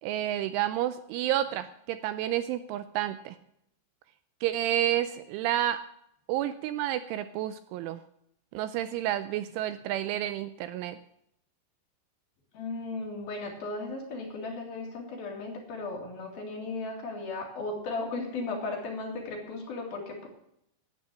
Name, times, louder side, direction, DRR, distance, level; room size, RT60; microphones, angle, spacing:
voice 1, 0.0-3.4 4.4-5.8 6.3-8.0 8.5-11.0, right 12 dB, 80° right, 12 dB, 2.9 m, -30 dB
voice 2, 12.5-20.3, left 3 dB, 55° left, -1 dB, 3.7 m, -36 dB
13.0 x 8.8 x 7.6 m, 0.76 s
omnidirectional pair, 5.9 m